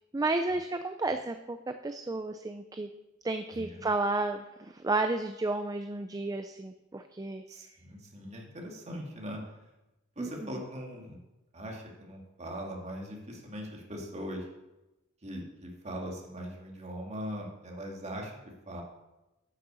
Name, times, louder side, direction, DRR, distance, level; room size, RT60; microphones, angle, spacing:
voice 1, 0.1-2.9 3.2-7.4 10.2-10.5, right 2 dB, 15° right, 8 dB, 0.4 m, -32 dB
voice 2, 3.5-3.9 7.5-9.4 10.2-11.2 11.5-14.5 15.2-18.4 18.7-18.8, equal, 30° right, 0 dB, 2.3 m, -40 dB
10.0 x 6.6 x 6.9 m, 0.98 s
head